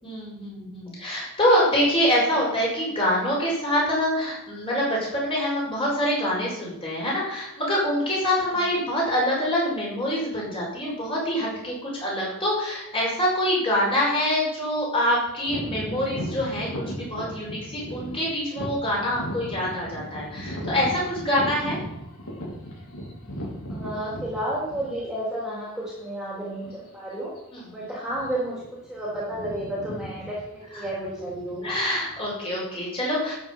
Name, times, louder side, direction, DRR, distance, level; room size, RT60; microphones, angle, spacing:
voice 1, 0.0-21.8 26.6-26.7 27.5-27.6 31.6-33.3, equal, 25° left, -4 dB, 5.6 m, -25 dB
sound 1, 15.5-25.2 25.9-26.0 26.6-26.9 27.1-27.4 28.0-28.6 28.9-32.3, equal, 85° left, 4.2 m, -36 dB
voice 2, 23.7-27.3 27.7-31.7, right 1 dB, 5° right, -7 dB, 3.5 m, -32 dB
12.5 x 8.4 x 5.5 m, 0.85 s
head